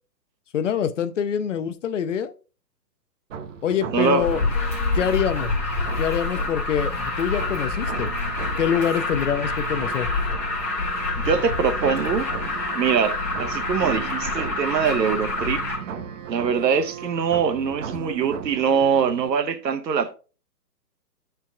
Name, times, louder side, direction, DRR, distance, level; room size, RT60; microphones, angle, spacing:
voice 1, 0.5-2.3 3.6-4.4 4.9-5.5 6.0-8.1 8.6-10.1, left 8 dB, 50° left, 0.5 m, -25 dB
sound 1, 3.3-19.3, right 7 dB, 50° right, 0.6 m, -36 dB
voice 2, 3.9-4.3 11.2-12.3 12.7-15.6 16.3-20.1, right 6 dB, 80° right, 0.9 m, -23 dB
Alarm, 4.2-15.8, left 3 dB, 5° left, 0.6 m, -27 dB
10.5 x 4.5 x 2.3 m
hypercardioid pair, 150°, 49 cm